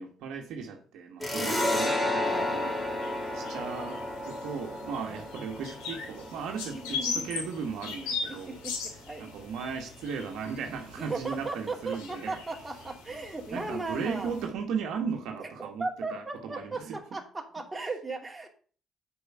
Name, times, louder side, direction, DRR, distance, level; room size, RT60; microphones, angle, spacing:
voice 1, 0.0-2.8 3.3-8.6 9.2-12.4 13.5-17.0, right 6 dB, 75° right, 1.3 m, -36 dB
sound 1, 1.2-8.4, left 1 dB, 15° left, 3.9 m, -32 dB
sound 2, 2.2-14.5, left 5 dB, 85° left, 2.2 m, -40 dB
voice 2, 6.7-7.3 8.3-8.7 9.1-9.2 11.0-14.3 15.8-18.5, right 3 dB, 20° right, 2.5 m, -36 dB
6.8 x 5.4 x 6.8 m
hypercardioid pair, 55°, 0 cm